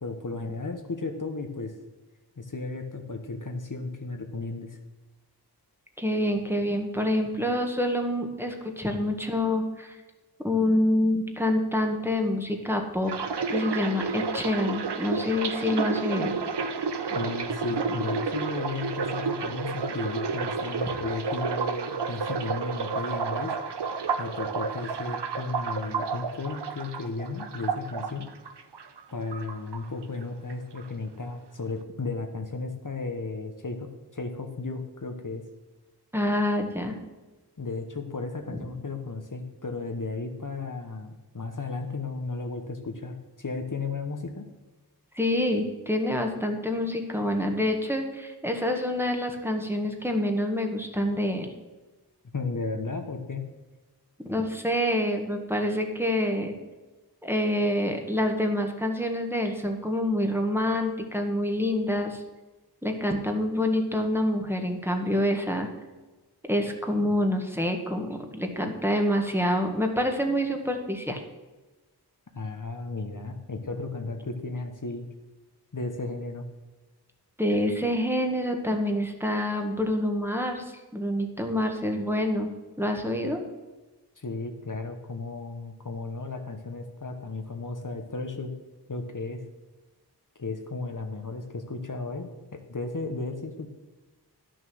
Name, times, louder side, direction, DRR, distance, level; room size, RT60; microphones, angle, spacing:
voice 1, 0.0-1.8 2.4-4.8 17.1-23.6 24.2-28.3 29.1-35.4 37.6-44.5 52.3-53.5 72.3-75.1 75.7-76.4 84.2-88.5 88.9-89.4 90.4-93.7, left 3 dB, 50° left, 5 dB, 1.1 m, -34 dB
voice 2, 6.0-10.0 10.4-13.1 13.5-16.3 36.1-37.0 45.1-51.5 54.3-56.5 57.2-62.2 62.8-65.7 66.5-71.2 77.4-80.6 80.9-82.5 82.8-83.4, left 1 dB, 5° right, 3 dB, 1.6 m, -27 dB
sound 1, 13.1-29.0 29.3-30.2 30.5-30.9, right 5 dB, 90° right, 0.7 m, -31 dB
11.0 x 6.4 x 6.3 m, 1.2 s
wide cardioid pair, 40°, 40 cm